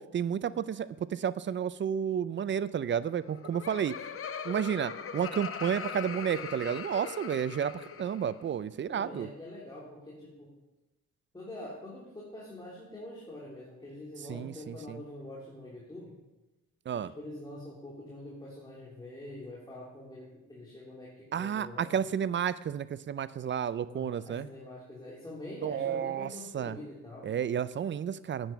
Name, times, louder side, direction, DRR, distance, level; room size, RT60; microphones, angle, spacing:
voice 1, 0.0-4.0 4.4-9.3 14.3-15.0 16.9-17.1 21.3-24.5 25.6-26.8 27.2-28.5, right 8 dB, 40° right, 17 dB, 0.5 m, -31 dB
Laughter, 3.1-8.4, left 7 dB, 45° left, 0.9 m, -40 dB
voice 2, 8.9-10.5 11.3-16.1 16.9-21.9 23.9-27.3, left 1 dB, 15° left, -6 dB, 3.3 m, -45 dB
10.5 x 8.9 x 5.8 m, 1.0 s
cardioid pair, 90°, 30 cm